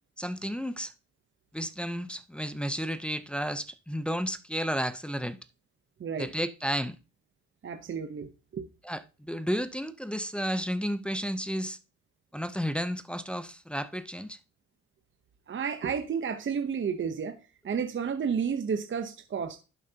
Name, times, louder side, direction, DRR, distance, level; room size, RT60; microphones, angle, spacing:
voice 1, 0.2-0.9 1.5-5.4 6.2-7.0 8.8-11.8 12.3-14.4, equal, 5° left, 0.6 m, -32 dB
voice 2, 6.0-6.3 7.6-8.6 15.5-19.6, right 6 dB, 40° right, 0.9 m, -32 dB
11.5 x 7.2 x 2.8 m
cardioid pair, 90°, 30 cm